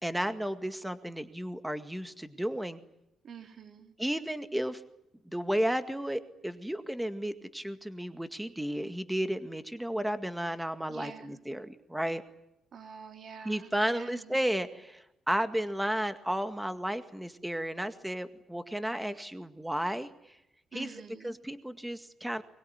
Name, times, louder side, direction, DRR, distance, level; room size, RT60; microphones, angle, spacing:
voice 1, 0.0-2.8 4.0-4.8 5.3-12.2 13.4-20.4 20.7-21.0 21.2-22.4, equal, 5° right, 10 dB, 2.0 m, -33 dB
voice 2, 3.2-3.9 10.9-11.4 12.7-14.4 20.7-21.4, right 6 dB, 60° right, 7 dB, 3.3 m, -46 dB
24.0 x 21.5 x 9.7 m, 0.83 s
cardioid pair, 90°, 0 cm